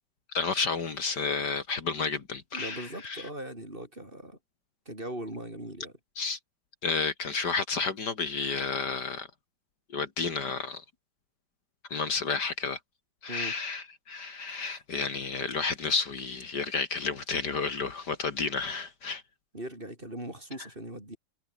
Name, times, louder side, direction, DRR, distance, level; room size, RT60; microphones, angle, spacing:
voice 1, 0.3-3.2 6.2-6.4 6.8-9.3 9.9-10.8 11.9-12.8 13.2-19.2, left 4 dB, 65° left, 2.7 m, -31 dB
voice 2, 2.5-4.4 4.9-5.9 13.3-13.6 19.5-21.2, right 1 dB, 25° right, 7.5 m, -39 dB
omnidirectional pair, 2.0 m